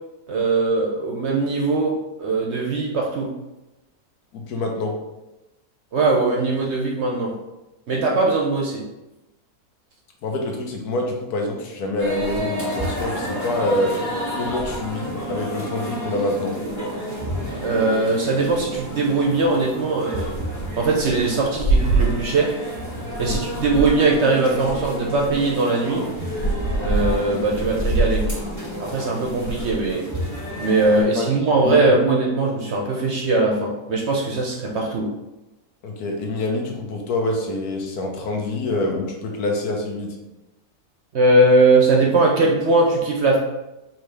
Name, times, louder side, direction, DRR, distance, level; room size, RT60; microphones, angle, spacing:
voice 1, 0.3-3.3 5.9-7.3 7.9-8.8 17.6-20.4 20.8-22.5 23.2-26.0 26.8-28.2 28.8-30.0 30.6-35.1 41.1-43.4, right 2 dB, 60° right, -1 dB, 0.8 m, -20 dB
voice 2, 4.3-5.0 10.2-14.0 14.3-16.5 23.2-23.4 31.1-31.3 31.6-32.0 35.8-40.1, left 2 dB, 80° left, 1 dB, 1.3 m, -26 dB
sound 1, 12.0-31.0, right 1 dB, 10° left, 1.3 m, -27 dB
4.6 x 3.0 x 3.3 m, 0.99 s
omnidirectional pair, 1.6 m